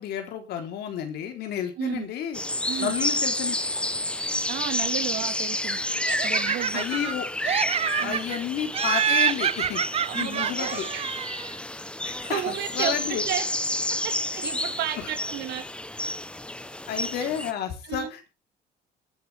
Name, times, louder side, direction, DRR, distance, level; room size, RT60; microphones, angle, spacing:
voice 1, 0.0-2.4 2.8-3.5 6.7-7.3 7.8-10.9 12.0-13.2 16.9-18.3, left 9 dB, 75° left, 5 dB, 3.9 m, -31 dB
voice 2, 1.8-2.1 2.7-2.9 4.5-5.8 6.2-6.8 8.0-8.2 10.0-11.1 12.2-13.4 14.0-15.6 17.2-17.3 17.9-18.1, right 11 dB, 80° right, 7 dB, 3.1 m, -32 dB
sound 1, 2.3-17.5, left 1 dB, 5° left, 1.0 m, -30 dB
Laughter, 6.0-7.1 7.4-8.4 8.7-11.5, right 8 dB, 35° right, 0.6 m, -27 dB
21.5 x 7.7 x 3.6 m, 0.30 s
cardioid pair, 110°, 17 cm